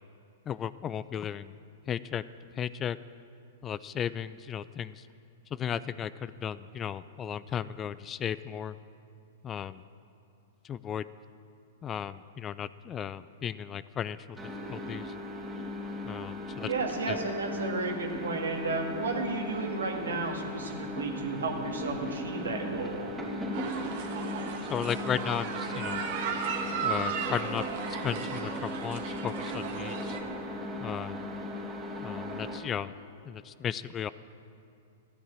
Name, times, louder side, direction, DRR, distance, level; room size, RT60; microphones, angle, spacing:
voice 1, 0.5-1.5 1.9-2.2 2.6-3.0 3.6-5.1 5.5-8.8 9.4-9.8 10.6-11.1 11.8-14.4 14.7-15.1 16.0-16.7 17.1-17.2 24.7-26.0 26.8-30.2 30.8-31.2 32.0-32.9 33.2-34.1, left 8 dB, 25° left, 16 dB, 0.4 m, -35 dB
sound 1, 14.4-32.6, left 1 dB, 10° right, 2.8 m, -37 dB
voice 2, 16.6-23.1, right 3 dB, 80° right, 2 dB, 2.0 m, -33 dB
sound 2, 23.5-30.2, right 6 dB, 55° right, 1.8 m, -35 dB
14.0 x 10.0 x 7.6 m, 2.6 s
hypercardioid pair, 110°, 0 cm